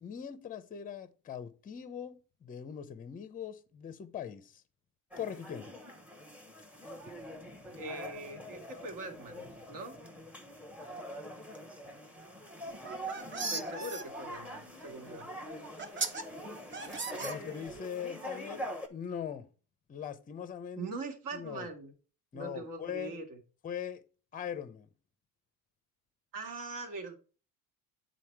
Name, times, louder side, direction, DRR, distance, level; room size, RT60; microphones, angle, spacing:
voice 1, 0.0-4.6 5.2-5.7 17.2-18.6 18.9-19.5 19.9-20.9 21.3-21.7 22.3-23.2 23.6-24.0 24.3-24.9, left 8 dB, 20° left, 0.6 m, -41 dB
sound 1, 5.1-18.9, equal, 5° right, 1.0 m, -44 dB
voice 2, 7.7-10.0 13.5-15.3 20.8-21.9 22.3-23.4 26.3-27.1, right 2 dB, 55° right, 1.9 m, -42 dB
sound 2, 12.7-14.0 15.2-15.3 15.8-16.2 16.7-17.8, right 4 dB, 30° right, 0.9 m, -37 dB
8.4 x 4.0 x 4.5 m
cardioid pair, 130°, 38 cm